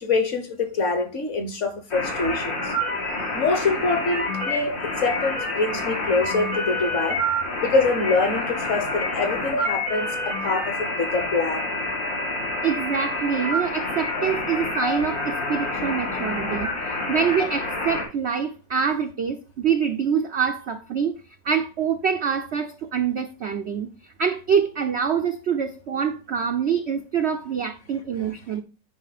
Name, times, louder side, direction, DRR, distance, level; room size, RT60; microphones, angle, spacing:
voice 1, 0.0-2.7 3.3-7.2 7.6-11.7, left 3 dB, 45° left, 1.3 m, -25 dB
sound 1, 1.9-18.0, left 1 dB, 85° left, 3.9 m, -27 dB
voice 2, 12.6-21.2 21.4-28.6, right 7 dB, 60° right, 0.7 m, -25 dB
9.9 x 5.1 x 4.1 m
omnidirectional pair, 2.0 m